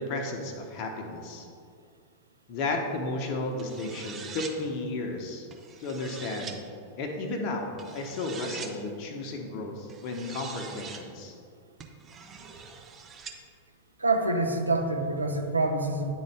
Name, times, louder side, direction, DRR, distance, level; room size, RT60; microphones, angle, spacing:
voice 1, 0.0-1.5 2.5-5.5 5.8-6.6 7.0-11.4, left 2 dB, 45° left, 3 dB, 0.8 m, -33 dB
sound 1, 3.6-4.6 5.5-6.6 7.8-8.7 9.9-11.0 11.8-13.4, right 6 dB, 25° right, 0.6 m, -43 dB
voice 2, 14.0-16.1, right 2 dB, 80° right, 4 dB, 0.5 m, -26 dB
9.8 x 3.9 x 3.3 m, 2.3 s
figure-of-eight pair, 90°, 0 cm